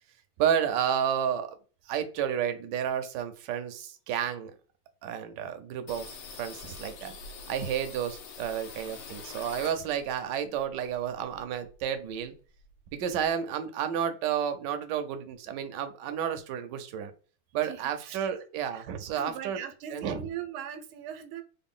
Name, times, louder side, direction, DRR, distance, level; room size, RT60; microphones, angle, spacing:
voice 1, 0.4-1.6 1.9-4.5 5.0-6.1 6.4-7.1 7.5-12.3 12.9-17.1 17.5-19.6 19.9-20.2, right 9 dB, 70° right, 8 dB, 1.1 m, -31 dB
sound 1, 5.9-10.2 10.6-11.9 12.2-12.3 12.6-13.3, left 5 dB, 90° left, 1.7 m, -45 dB
voice 2, 17.6-18.3 18.7-21.4, right 8 dB, 90° right, 9 dB, 1.5 m, -40 dB
4.0 x 2.1 x 3.6 m, 0.38 s
omnidirectional pair, 2.3 m